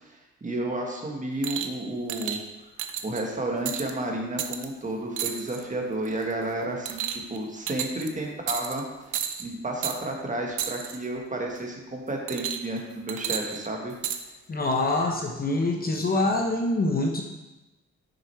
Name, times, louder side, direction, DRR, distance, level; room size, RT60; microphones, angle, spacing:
voice 1, 0.0-2.4 3.0-8.8 9.4-13.9, right 1 dB, 25° right, 1 dB, 1.5 m, -31 dB
sound 1, 1.4-1.8 2.1-2.4 2.8-3.2 3.7-3.9 4.4-4.7 5.2-5.6 6.0-6.3 6.9-7.4 7.7-8.1 8.5-8.8 9.1-9.4 9.8-10.0 10.6-11.0 12.3-12.8 13.1-14.2 15.0-15.1, right 10 dB, 80° right, 0.6 m, -32 dB
voice 2, 14.5-17.2, left 2 dB, 30° left, 2 dB, 0.8 m, -25 dB
6.5 x 4.9 x 4.5 m, 1.0 s
cardioid pair, 90°, 30 cm